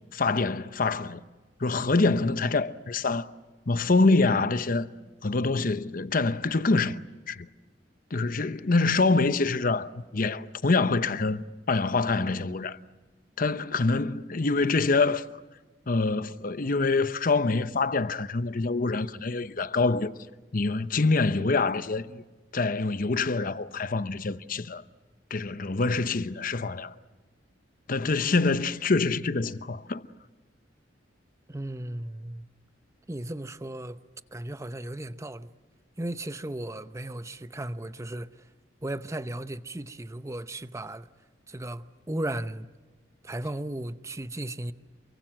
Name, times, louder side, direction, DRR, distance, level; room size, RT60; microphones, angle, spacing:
voice 1, 0.1-1.2 1.6-3.3 3.7-4.9 5.2-7.0 7.3-7.5 8.1-12.8 13.4-15.3 15.9-20.1 20.5-22.2 22.5-24.8 25.3-26.9 27.9-30.0, left 3 dB, 45° left, 0.8 m, -25 dB
voice 2, 31.5-32.5 33.1-34.0 34.3-35.5 36.0-38.5 38.8-41.1 41.5-42.7 43.2-44.7, right 1 dB, 15° right, 0.8 m, -35 dB
28.0 x 24.0 x 7.5 m
head